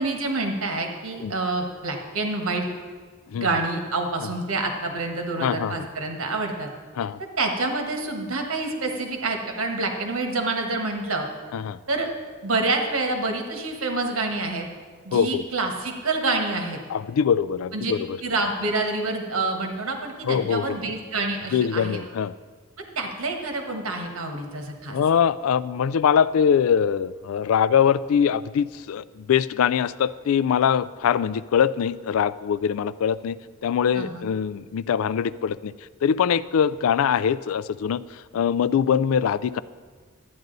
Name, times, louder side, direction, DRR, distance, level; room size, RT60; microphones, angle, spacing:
voice 1, 0.0-2.7 3.3-6.7 7.4-11.3 11.9-12.1 12.4-14.7 15.0-16.8 17.7-17.9 18.2-22.0 22.9-25.0 33.9-34.3, right 3 dB, 80° right, 3 dB, 1.4 m, -27 dB
voice 2, 5.4-5.8 7.0-7.2 11.5-11.8 15.1-15.4 16.9-18.2 20.2-20.8 21.5-22.3 24.9-33.4 33.6-35.7 36.0-38.0 38.3-39.6, left 7 dB, 80° left, 18 dB, 0.3 m, -22 dB
12.0 x 9.5 x 3.9 m, 1.5 s
head